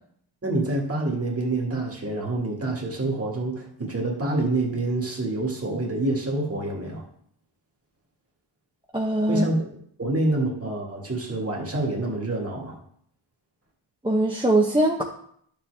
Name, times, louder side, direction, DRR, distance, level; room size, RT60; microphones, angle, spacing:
voice 1, 0.4-7.1 9.3-9.7 10.0-12.8, right 2 dB, 30° right, 0 dB, 2.0 m, -27 dB
voice 2, 8.9-9.5 14.0-15.0, right 1 dB, 10° right, -2 dB, 0.9 m, -21 dB
11.0 x 7.0 x 3.4 m, 0.66 s
wide cardioid pair, 115°, 49 cm